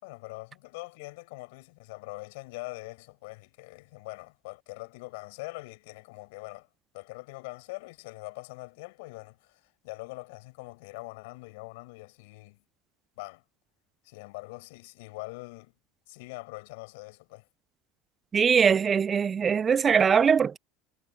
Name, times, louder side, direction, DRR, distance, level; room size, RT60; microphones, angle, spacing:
voice 1, 0.0-6.7 6.9-12.6 13.2-13.4 14.0-15.7 16.1-17.5, left 25 dB, 75° left, 6.6 m, -43 dB
voice 2, 18.3-20.6, right 6 dB, 30° right, 0.3 m, -22 dB
hypercardioid pair, 90°, 0 cm